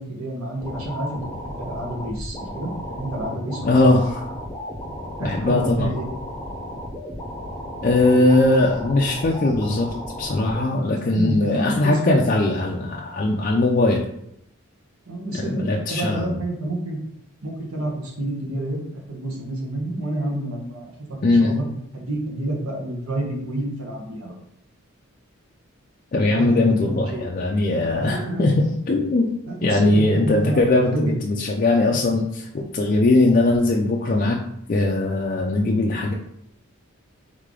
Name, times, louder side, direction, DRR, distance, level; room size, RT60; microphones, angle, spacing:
voice 1, 0.0-4.0 5.2-6.1 11.1-12.2 15.1-17.0 17.4-20.9 21.2-21.7 21.9-24.4 26.4-27.3 28.0-28.5 29.5-31.1, right 1 dB, 80° right, -1 dB, 1.1 m, -29 dB
sound 1, 0.6-10.6, equal, 15° left, 0.7 m, -34 dB
voice 2, 3.6-4.3 5.2-5.9 7.8-9.9 10.2-14.0 15.3-16.4 21.2-21.5 26.1-29.3 29.6-34.4 34.7-36.1, left 2 dB, 40° left, -1 dB, 0.4 m, -20 dB
3.6 x 3.3 x 3.7 m, 0.75 s
head